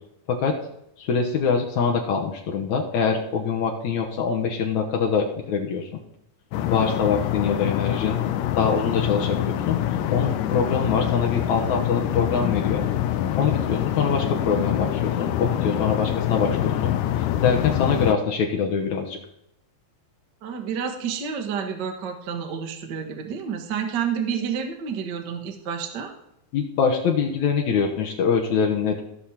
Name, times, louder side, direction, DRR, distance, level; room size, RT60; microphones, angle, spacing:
voice 1, 1.0-6.0 6.7-8.2 8.6-9.8 10.1-12.9 13.4-16.9 17.4-19.2 26.5-29.0, left 6 dB, 70° left, 1 dB, 2.4 m, -24 dB
sound 1, 6.5-18.1, left 11 dB, 85° left, 2.3 m, -25 dB
voice 2, 20.4-26.1, right 7 dB, 50° right, 4 dB, 1.3 m, -29 dB
16.0 x 6.4 x 4.3 m, 0.80 s
omnidirectional pair, 3.7 m